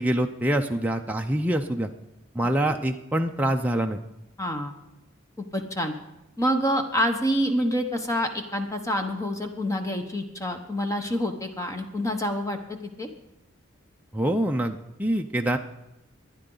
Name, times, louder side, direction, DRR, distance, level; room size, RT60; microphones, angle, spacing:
voice 1, 0.0-1.9 2.3-4.0 14.1-15.6, right 1 dB, 10° right, 3 dB, 0.5 m, -25 dB
voice 2, 4.4-4.7 5.4-5.9 6.4-13.1, equal, 15° left, 4 dB, 1.0 m, -27 dB
23.0 x 9.9 x 3.9 m, 0.94 s
head